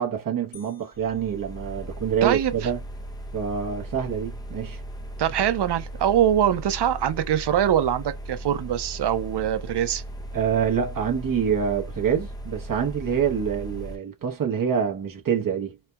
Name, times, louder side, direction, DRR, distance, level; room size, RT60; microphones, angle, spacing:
voice 1, 0.0-2.8 3.3-4.8 10.3-15.8, right 7 dB, 55° right, 1.0 m, -26 dB
sound 1, 0.5-2.3, left 6 dB, 90° left, 0.9 m, -55 dB
sound 2, 0.9-14.0, right 1 dB, 10° left, 0.4 m, -37 dB
voice 2, 2.2-2.7 5.2-10.0, right 10 dB, 75° right, 0.6 m, -23 dB
4.2 x 2.2 x 2.2 m
wide cardioid pair, 135°, 41 cm